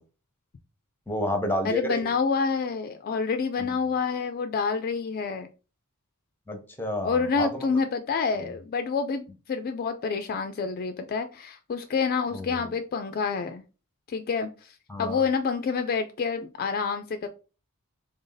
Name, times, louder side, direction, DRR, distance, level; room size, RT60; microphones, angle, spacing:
voice 1, 1.1-2.0 6.5-7.7 12.3-12.8 14.9-15.2, left 1 dB, 10° left, 0.7 m, -30 dB
voice 2, 1.6-5.5 7.0-13.6 14.1-17.3, left 5 dB, 40° left, 0.3 m, -28 dB
3.8 x 2.6 x 3.9 m
head